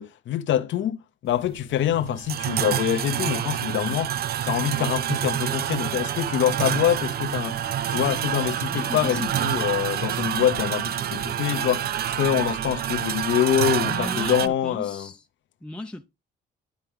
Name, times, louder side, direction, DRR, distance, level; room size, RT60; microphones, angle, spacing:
voice 1, 0.0-4.2 4.5-11.8 12.2-15.1, left 11 dB, 70° left, 0.8 m, -25 dB
sound 1, 1.3-14.5, right 10 dB, 50° right, 0.4 m, -27 dB
voice 2, 8.7-9.5 13.8-15.2 15.6-16.1, left 2 dB, 5° left, 0.6 m, -36 dB
11.5 x 4.5 x 3.5 m
cardioid pair, 90°, 20 cm